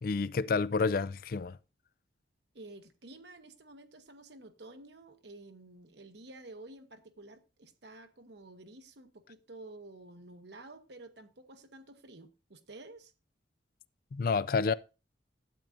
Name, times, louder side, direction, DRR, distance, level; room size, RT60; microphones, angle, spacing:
voice 1, 0.0-1.6 14.1-14.7, left 4 dB, 50° left, 0.4 m, -29 dB
voice 2, 2.5-13.1, right 2 dB, 65° right, 1.0 m, -51 dB
12.0 x 8.6 x 2.6 m
head